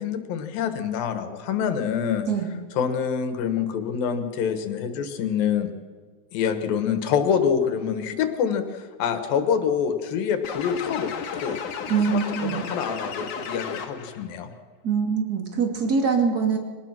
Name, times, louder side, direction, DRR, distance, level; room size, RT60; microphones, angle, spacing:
voice 1, 0.0-2.2 2.7-5.7 6.3-11.6 12.1-14.5, left 7 dB, 90° left, 8 dB, 3.3 m, -26 dB
sound 1, 10.4-14.2, left 6 dB, 65° left, 2.9 m, -33 dB
voice 2, 11.9-12.6 14.8-16.6, right 5 dB, 30° right, 3 dB, 2.6 m, -23 dB
23.0 x 18.5 x 6.1 m, 1.5 s
omnidirectional pair, 4.0 m